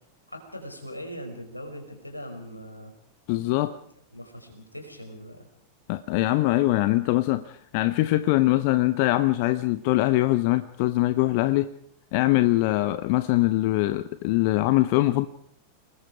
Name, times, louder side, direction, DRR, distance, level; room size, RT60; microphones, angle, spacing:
voice 1, 0.3-2.9 4.1-5.5, equal, 85° left, 5.3 m, -40 dB
voice 2, 3.3-3.7 5.9-11.7 12.1-15.3, left 17 dB, 45° left, 0.8 m, -22 dB
30.0 x 20.0 x 4.9 m
figure-of-eight pair, 90°, 0 cm